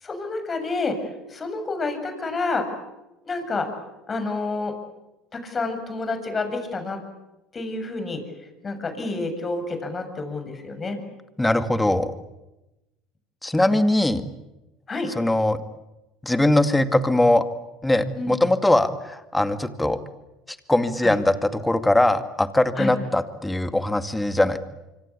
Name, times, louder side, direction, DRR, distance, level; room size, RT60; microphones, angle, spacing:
voice 1, 0.0-2.7 3.3-3.7 4.1-4.7 5.3-7.0 7.5-8.2 8.6-11.0 14.9-15.1 18.2-18.3 21.0-21.1 22.8-22.9, left 3 dB, 25° left, 7 dB, 7.0 m, -29 dB
voice 2, 11.4-12.1 13.4-14.2 15.2-15.6 16.2-17.4 17.8-20.0 20.7-24.6, left 1 dB, 10° left, 10 dB, 2.3 m, -21 dB
25.5 x 25.0 x 8.6 m, 0.98 s
supercardioid pair, 90°, 0 cm